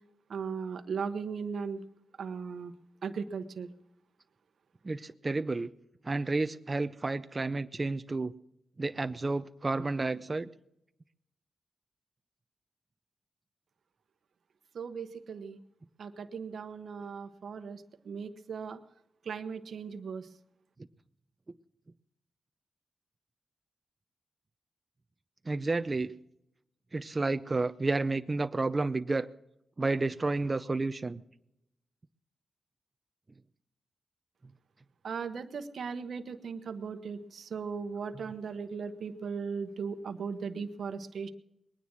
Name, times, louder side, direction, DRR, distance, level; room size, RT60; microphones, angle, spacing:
voice 1, 0.3-1.8 2.2-2.7 3.0-3.7 14.7-15.6 16.0-18.8 19.2-20.3 35.0-41.3, right 5 dB, 70° right, 9 dB, 1.0 m, -37 dB
voice 2, 4.8-5.7 6.0-8.3 8.8-10.5 25.5-26.1 26.9-29.3 29.8-31.2, right 3 dB, 30° right, 11 dB, 0.6 m, -31 dB
20.5 x 9.7 x 6.2 m, 0.81 s
cardioid pair, 65°, 0 cm